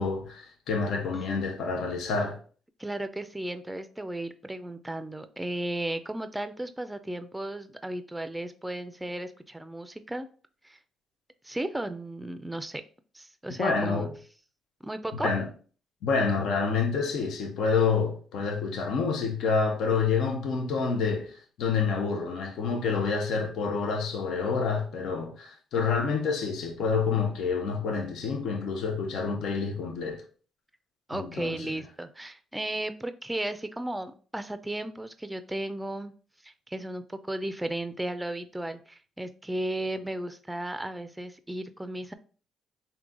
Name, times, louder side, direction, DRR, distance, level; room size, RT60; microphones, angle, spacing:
voice 1, 0.0-2.4 13.6-14.1 15.2-15.5 16.0-30.2 31.1-31.7, left 5 dB, 80° left, 0.7 m, -28 dB
voice 2, 2.8-10.3 10.6-10.8 11.4-12.8 13.1-14.1 14.8-15.3 31.1-36.1 36.4-42.1, right 1 dB, 10° right, 0.4 m, -35 dB
3.8 x 2.8 x 3.7 m
cardioid pair, 90°, 0 cm